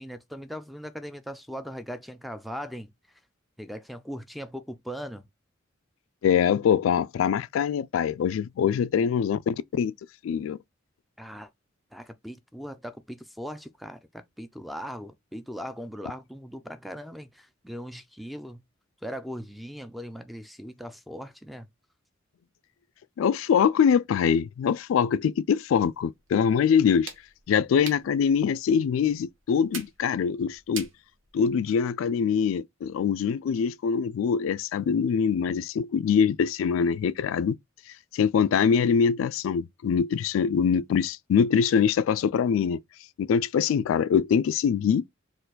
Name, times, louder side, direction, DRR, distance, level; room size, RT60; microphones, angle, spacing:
voice 1, 0.0-2.9 3.6-5.2 11.2-11.5 11.9-18.6 19.0-21.7, equal, ahead, 0.4 m, -39 dB
voice 2, 6.2-9.9 10.2-10.6 23.2-27.1 27.5-30.9 31.3-37.6 38.1-42.8 43.2-45.0, left 7 dB, 85° left, 0.3 m, -23 dB
sound 1, 25.9-31.8, right 5 dB, 75° right, 1.2 m, -45 dB
4.4 x 2.5 x 3.9 m
head